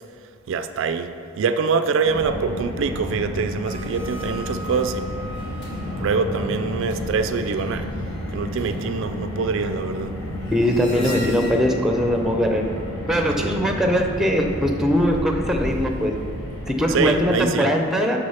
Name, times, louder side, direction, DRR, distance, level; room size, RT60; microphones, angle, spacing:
voice 1, 0.5-5.1 6.0-7.9 8.3-10.2 10.9-11.2 13.4-13.8 16.9-17.7, right 5 dB, 60° right, 9 dB, 0.3 m, -25 dB
Car, 2.1-17.2, left 1 dB, 80° left, 1.9 m, -31 dB
sound 1, 3.6-12.0 12.4-12.5, equal, 55° left, 1.7 m, -39 dB
voice 2, 10.5-12.7 13.1-16.1 16.7-18.2, equal, ahead, 3 dB, 0.5 m, -21 dB
6.3 x 6.2 x 5.6 m, 2.4 s
head